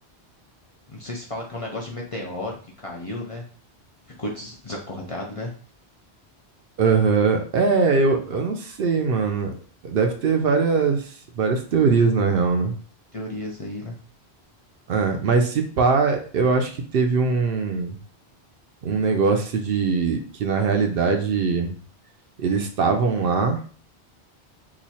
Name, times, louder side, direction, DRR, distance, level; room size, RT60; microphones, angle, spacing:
voice 1, 0.9-3.4 4.2-5.5 13.1-13.9, left 1 dB, 40° left, -1 dB, 0.5 m, -33 dB
voice 2, 6.8-9.5 9.8-12.7 14.9-18.0 18.8-21.7 22.4-23.6, right 4 dB, 65° right, 5 dB, 0.7 m, -21 dB
3.0 x 2.3 x 4.1 m, 0.43 s
omnidirectional pair, 1.1 m